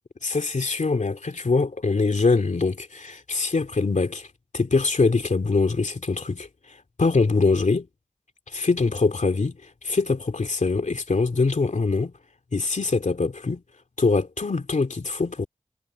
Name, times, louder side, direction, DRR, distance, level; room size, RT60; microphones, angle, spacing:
voice 1, 0.2-4.3 4.5-7.9 8.5-9.6 9.8-12.1 12.5-13.6 14.0-15.5, left 3 dB, 80° left, 2.7 m, -23 dB
wide cardioid pair, 60°, 12 cm